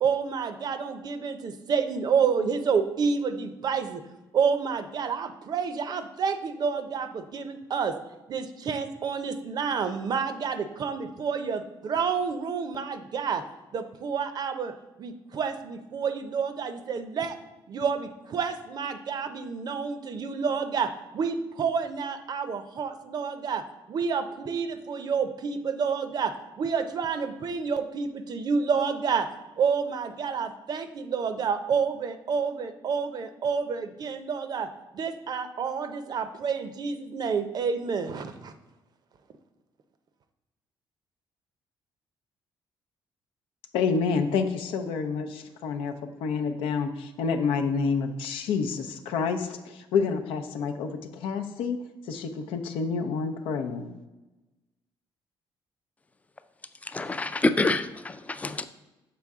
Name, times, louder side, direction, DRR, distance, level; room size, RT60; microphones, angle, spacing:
voice 1, 0.0-4.0 4.3-7.9 8.3-13.4 13.7-14.7 15.0-17.4 17.7-23.6 23.9-29.3 29.6-34.7 34.9-38.5, right 6 dB, 50° right, 9 dB, 0.6 m, -29 dB
voice 2, 43.7-45.9 46.2-51.8 52.1-53.9, left 5 dB, 90° left, 6 dB, 0.6 m, -28 dB
voice 3, 56.9-58.6, left 2 dB, 15° left, 11 dB, 0.4 m, -27 dB
6.9 x 4.3 x 3.6 m, 1.1 s
cardioid pair, 100°, 9 cm